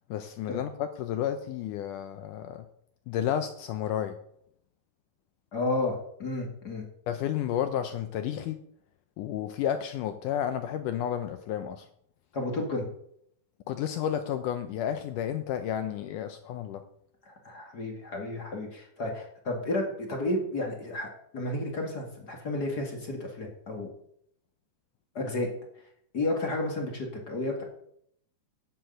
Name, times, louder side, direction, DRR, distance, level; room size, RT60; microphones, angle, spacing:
voice 1, 0.1-2.7 3.1-4.2 7.1-8.6 9.2-11.8 13.7-16.8, left 10 dB, 85° left, 9 dB, 1.8 m, -31 dB
voice 2, 5.5-6.8 12.3-12.9 17.2-23.9 25.1-25.5 26.1-27.6, left 2 dB, 35° left, 2 dB, 1.7 m, -32 dB
9.7 x 7.7 x 7.7 m, 0.69 s
omnidirectional pair, 4.6 m